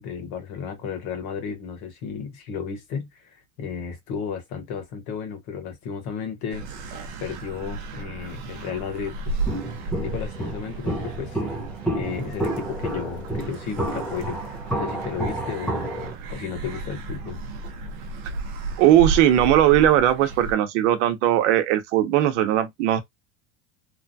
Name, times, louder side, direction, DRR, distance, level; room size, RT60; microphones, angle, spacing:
voice 1, 0.0-9.4 10.0-11.4 11.9-15.9 16.3-17.4, left 6 dB, 50° left, 1.2 m, -33 dB
sound 1, 6.5-20.5, right 3 dB, 50° right, 0.7 m, -34 dB
Walk footsteps, 9.5-16.1, right 1 dB, 5° left, 0.6 m, -30 dB
voice 2, 18.8-23.0, right 12 dB, 75° right, 0.9 m, -19 dB
3.1 x 2.3 x 2.6 m
cardioid pair, 180°, 37 cm